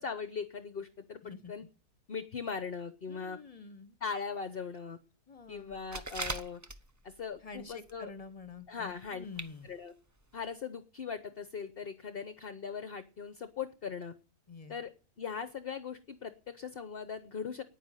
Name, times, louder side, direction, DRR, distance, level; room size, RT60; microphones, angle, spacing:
voice 1, 0.0-1.6 2.1-3.4 4.0-5.0 5.5-6.6 7.0-8.1 8.7-9.2 9.6-9.9 10.3-14.1 14.7-14.9 15.2-17.6, left 6 dB, 45° left, 11 dB, 1.0 m, -39 dB
voice 2, 1.2-1.5 3.1-4.0 5.3-5.8 7.4-9.7 14.5-14.8, left 4 dB, 25° left, 11 dB, 1.3 m, -47 dB
sound 1, 5.7-7.2 7.5-8.0 8.3-8.4 9.1-9.2 9.4-9.5 9.9-10.0 10.4-10.5, right 2 dB, 25° right, 0.4 m, -40 dB
10.0 x 9.7 x 9.1 m, 0.37 s
omnidirectional pair, 1.7 m